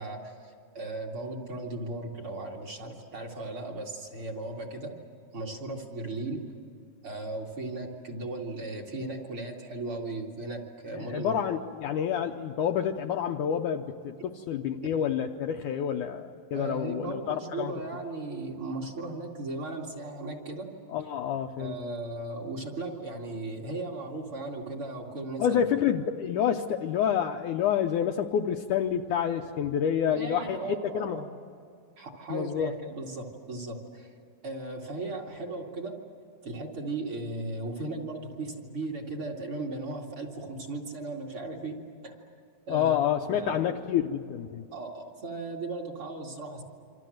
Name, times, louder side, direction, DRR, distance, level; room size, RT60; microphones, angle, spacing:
voice 1, 0.0-5.0 5.3-6.4 7.0-11.3 16.5-20.7 21.6-25.6 30.1-31.3 32.0-34.1 34.4-36.0 36.4-42.2 42.7-43.7 44.7-46.6, right 2 dB, 40° right, -1 dB, 2.9 m, -37 dB
voice 2, 11.0-17.7 20.9-21.7 25.4-30.6 30.9-31.2 32.3-32.7 42.7-44.7, left 9 dB, 75° left, 4 dB, 2.0 m, -28 dB
28.0 x 26.0 x 7.9 m, 2.4 s
omnidirectional pair, 4.2 m